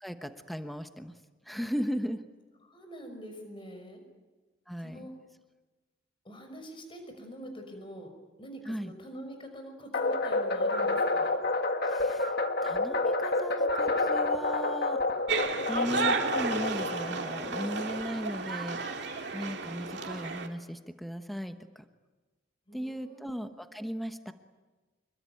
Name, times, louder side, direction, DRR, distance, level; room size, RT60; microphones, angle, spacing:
voice 1, 0.0-1.1 1.5-2.2 4.7-5.1 8.7-8.9 11.9-12.3 12.6-15.0 15.7-21.8 22.7-24.3, equal, ahead, 7 dB, 1.1 m, -37 dB
voice 2, 2.6-4.0 4.8-5.1 6.2-8.1 8.4-11.3 22.7-23.5, equal, 25° left, 5 dB, 5.7 m, -45 dB
sound 1, 9.9-18.2, left 2 dB, 50° left, 2.0 m, -29 dB
sound 2, 15.3-20.5, right 4 dB, 55° right, 2.5 m, -33 dB
26.5 x 22.0 x 9.3 m, 1.3 s
head